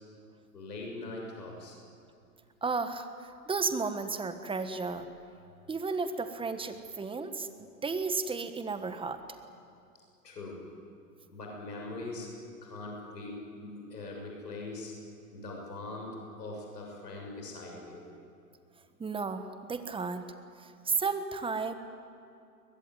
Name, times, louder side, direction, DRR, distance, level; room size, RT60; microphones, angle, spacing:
voice 1, 0.5-1.8 10.2-10.6 11.3-12.3 12.6-14.9 15.3-18.1, left 2 dB, 85° left, 0 dB, 6.8 m, -41 dB
voice 2, 2.6-5.1 5.7-7.5 7.8-9.2 19.0-20.2 20.6-21.7, right 4 dB, 10° right, 9 dB, 1.4 m, -33 dB
23.0 x 20.5 x 9.4 m, 2.6 s
hypercardioid pair, 115°, 48 cm